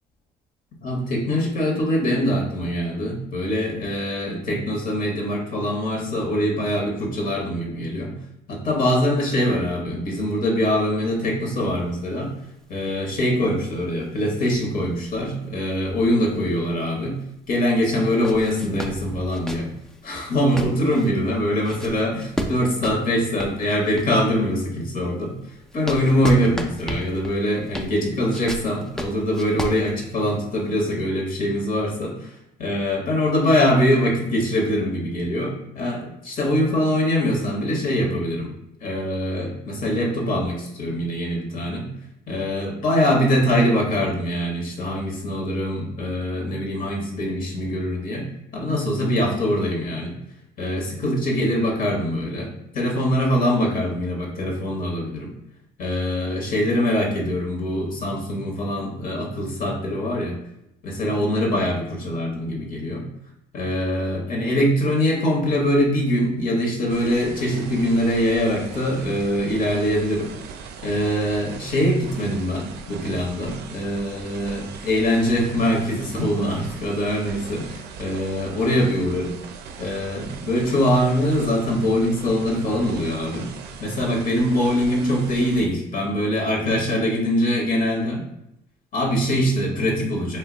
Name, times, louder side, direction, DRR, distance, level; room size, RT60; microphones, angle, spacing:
voice 1, 0.8-8.2 8.5-12.3 12.7-17.2 17.5-19.7 20.0-25.3 25.7-32.3 32.6-38.5 38.8-41.9 42.3-48.2 48.5-50.2 50.6-55.3 55.8-60.4 60.8-63.0 63.5-70.3 70.8-79.4 79.8-83.5 83.8-88.2 88.9-90.4, equal, 55° left, 0 dB, 0.9 m, -23 dB
sound 1, 11.5-16.8 17.2-17.3 17.9-24.3 24.8-30.6, equal, 5° left, 0.3 m, -34 dB
sound 2, 66.9-85.7, right 6 dB, 75° right, 0.4 m, -39 dB
2.7 x 2.1 x 3.8 m, 0.82 s
cardioid pair, 110°, 17 cm